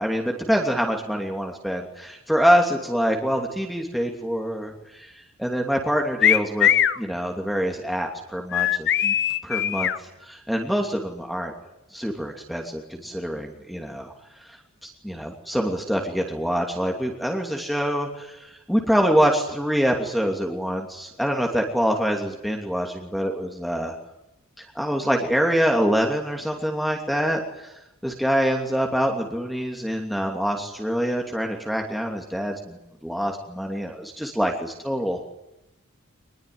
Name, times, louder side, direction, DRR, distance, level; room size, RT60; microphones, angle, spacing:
voice 1, 0.0-6.7 7.0-9.1 9.4-9.9 10.3-11.5 11.9-14.1 14.8-23.9 24.6-27.7 28.0-35.2, equal, ahead, 1 dB, 2.9 m, -25 dB
sound 1, 6.2-7.0 8.5-10.0, left 10 dB, 55° left, 1.2 m, -20 dB
25.5 x 21.0 x 9.6 m, 0.90 s
head